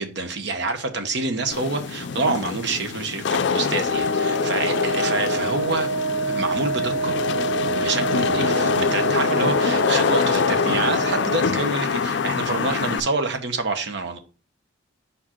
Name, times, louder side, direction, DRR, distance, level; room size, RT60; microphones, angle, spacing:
voice 1, 0.0-7.1 7.6-14.2, right 3 dB, 60° right, 0.9 m, -27 dB
Wind / Rain, 1.5-13.0, left 5 dB, 60° left, 0.4 m, -24 dB
Wind instrument woodwind instrument, 3.9-11.7, right 3 dB, 20° left, 1.4 m, -27 dB
5.1 x 4.9 x 4.3 m
head